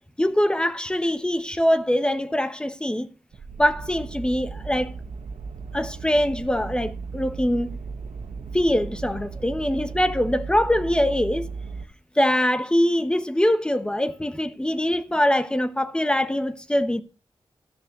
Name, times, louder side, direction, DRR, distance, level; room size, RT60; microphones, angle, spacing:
voice 1, 0.2-3.1 3.6-4.9 5.7-7.8 8.5-11.5 12.2-17.0, left 1 dB, 10° left, 1.1 m, -23 dB
sound 1, 3.3-11.8, right 4 dB, 85° right, 1.2 m, -36 dB
13.5 x 7.1 x 6.6 m
wide cardioid pair, 120°, 9 cm